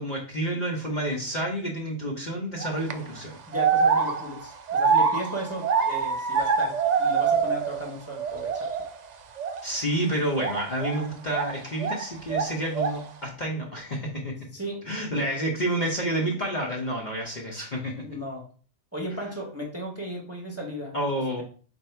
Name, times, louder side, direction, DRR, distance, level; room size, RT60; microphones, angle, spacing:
voice 1, 0.0-3.4 9.6-14.3 14.8-18.0 20.9-21.4, right 1 dB, 40° left, -1 dB, 0.9 m, -29 dB
sound 1, 2.6-2.9 3.5-7.9 8.2-8.9 9.4-9.6 10.4-12.0 12.3-13.1, right 6 dB, 75° right, 0.4 m, -25 dB
voice 2, 3.5-8.7 14.5-14.8 18.0-18.5 18.9-21.2, equal, 15° right, -1 dB, 0.9 m, -35 dB
4.4 x 2.7 x 4.3 m, 0.40 s
omnidirectional pair, 1.3 m